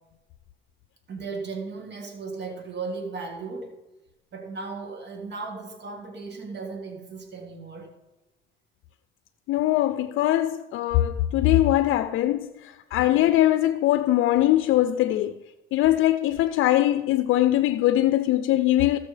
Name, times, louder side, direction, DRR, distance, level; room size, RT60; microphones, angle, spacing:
voice 1, 1.1-3.7 4.3-7.9 13.0-13.1, right 4 dB, 60° right, 1.6 m, -36 dB
voice 2, 9.5-15.4 15.7-19.0, left 14 dB, 85° left, 0.4 m, -21 dB
14.5 x 6.7 x 3.2 m
cardioid pair, 90°, 20 cm